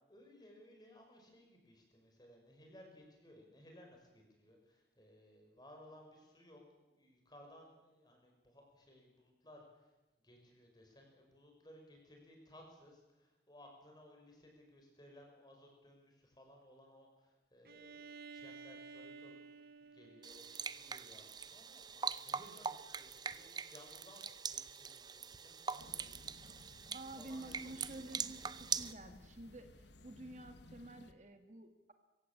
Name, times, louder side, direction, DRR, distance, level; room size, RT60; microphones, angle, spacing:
voice 1, 0.1-6.6 6.9-9.9 10.2-26.3 27.2-28.1, left 1 dB, 25° left, 2 dB, 5.8 m, -60 dB
Bowed string instrument, 17.7-21.4, right 4 dB, 60° right, 1.1 m, -54 dB
sound 1, 20.2-28.9, right 6 dB, 25° right, 0.6 m, -43 dB
sound 2, 25.8-31.1, left 2 dB, 85° left, 1.4 m, -59 dB
voice 2, 26.9-31.9, right 2 dB, 40° right, 7 dB, 1.6 m, -50 dB
25.0 x 15.5 x 8.7 m, 1.1 s
head